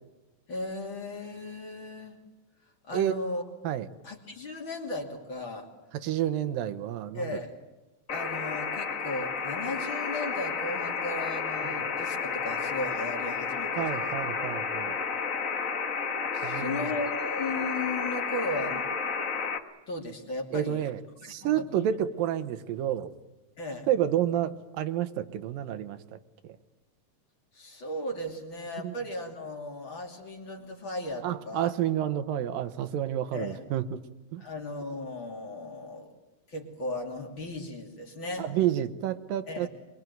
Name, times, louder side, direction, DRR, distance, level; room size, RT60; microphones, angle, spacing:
voice 1, 0.5-2.2 2.8-3.4 4.0-5.7 7.1-7.5 8.1-14.2 16.5-18.9 19.9-20.9 21.2-21.9 23.6-23.9 27.5-31.7 33.3-33.6 34.4-36.1 36.5-38.5 39.5-39.7, left 2 dB, 35° left, 2 dB, 3.3 m, -36 dB
voice 2, 5.9-7.3 11.7-11.9 13.8-15.0 16.4-16.8 20.5-23.1 23.9-26.2 28.8-28.9 31.2-34.0 34.3-34.4 38.4-39.7, right 11 dB, 85° right, 10 dB, 2.8 m, -30 dB
sound 1, 8.1-19.6, left 5 dB, 60° left, 0.8 m, -31 dB
24.0 x 23.5 x 9.3 m, 1.0 s
omnidirectional pair, 3.9 m